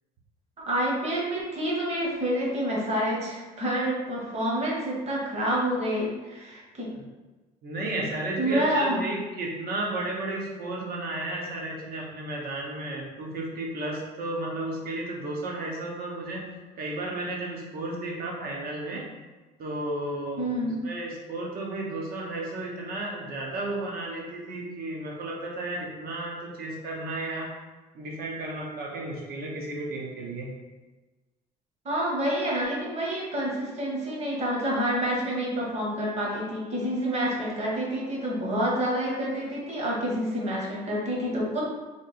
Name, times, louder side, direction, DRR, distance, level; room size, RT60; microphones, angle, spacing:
voice 1, 0.6-6.9 8.4-9.0 20.4-20.8 31.8-41.6, equal, 40° right, -3 dB, 1.3 m, -28 dB
voice 2, 7.6-16.5 16.8-19.1 19.6-27.6 27.9-30.5, right 2 dB, 60° right, -2 dB, 1.1 m, -33 dB
3.4 x 2.7 x 4.2 m, 1.2 s
cardioid pair, 110°, 17 cm